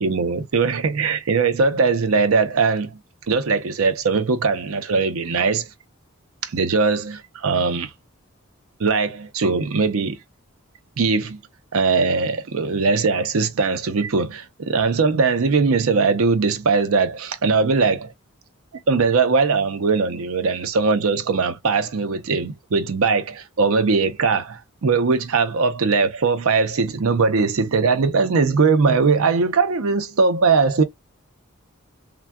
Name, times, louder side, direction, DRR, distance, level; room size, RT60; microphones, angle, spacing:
voice 1, 0.0-3.0 3.3-5.7 6.4-7.9 8.8-10.2 11.0-11.4 11.7-18.1 18.9-30.8, right 4 dB, 80° right, 0.6 m, -20 dB
3.5 x 2.2 x 2.2 m
head